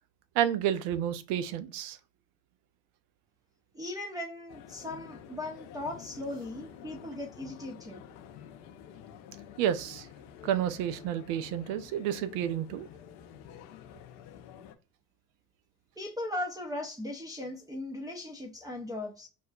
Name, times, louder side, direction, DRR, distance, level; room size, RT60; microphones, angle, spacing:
voice 1, 0.3-2.0 9.6-10.1 10.4-12.9, right 10 dB, 60° right, 0.6 m, -30 dB
voice 2, 3.7-8.0 16.0-19.3, left 1 dB, 10° right, 0.5 m, -38 dB
sound 1, 4.5-14.8, left 9 dB, 65° left, 0.6 m, -49 dB
5.4 x 2.3 x 2.3 m
hypercardioid pair, 60°, 44 cm